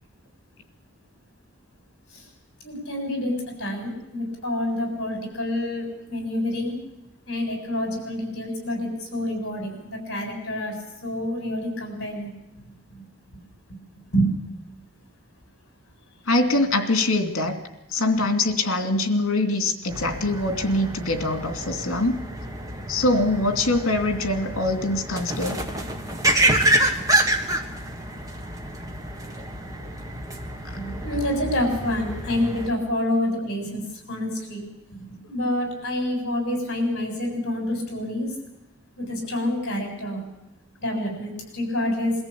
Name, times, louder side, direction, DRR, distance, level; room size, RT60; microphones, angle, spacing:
voice 1, 2.6-6.8 7.3-10.7 11.0-12.3 14.1-14.3 18.2-18.3 30.8-33.8 34.1-34.6 34.9-38.3 39.0-40.2 40.8-42.1, left 1 dB, 50° left, 3 dB, 7.0 m, -27 dB
voice 2, 16.3-17.6 17.9-22.2 22.9-25.6 30.6-30.8, left 2 dB, 70° left, 6 dB, 2.7 m, -23 dB
sound 1, 19.9-32.7, right 1 dB, 15° right, 1.7 m, -27 dB
22.5 x 14.5 x 8.5 m, 0.91 s
head